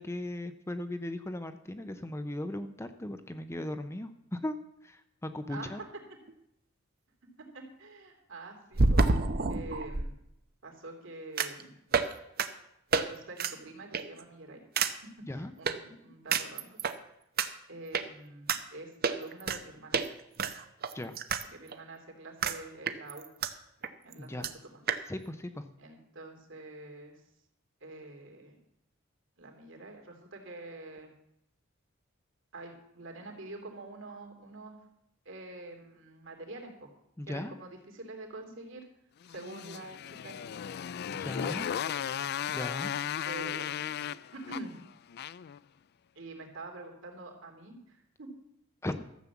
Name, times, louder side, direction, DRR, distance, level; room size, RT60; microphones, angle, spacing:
voice 1, 0.0-4.6 4.8-5.8 15.3-15.5 20.9-21.2 24.2-24.5 25.1-25.7 37.2-37.5 41.1-41.7 42.5-42.9 48.8-49.0, left 1 dB, 15° left, 9 dB, 0.6 m, -37 dB
sound 1, 6.3-6.4 8.7-10.1 11.4-11.6 11.9-12.1 12.4-12.5 12.9-13.0 13.4-13.5 13.9-14.2 14.8-14.9 15.7-15.8 16.3-16.9 17.4-17.5 17.9-18.0 18.5-18.6 19.0-19.6 19.9-20.1 20.4-21.4 21.7-21.8 22.4-22.6 22.9-23.5 23.8-23.9 24.1-24.2 24.4-24.5 24.9-25.0, right 4 dB, 50° right, 0.8 m, -28 dB
voice 2, 7.5-10.1 10.6-11.7 13.0-14.6 15.3-16.8 17.7-20.0 21.5-23.3 24.0-24.8 25.8-27.2 27.8-28.6 29.4-31.1 32.5-34.8 35.2-36.9 37.3-38.8 39.3-40.5 41.3-42.0 43.2-44.0 44.3-44.8 46.1-48.3, right 2 dB, 65° right, 2 dB, 3.0 m, -46 dB
Motorcycle, 39.2-45.6, left 9 dB, 55° left, 0.3 m, -36 dB
13.5 x 7.4 x 7.2 m, 0.80 s
head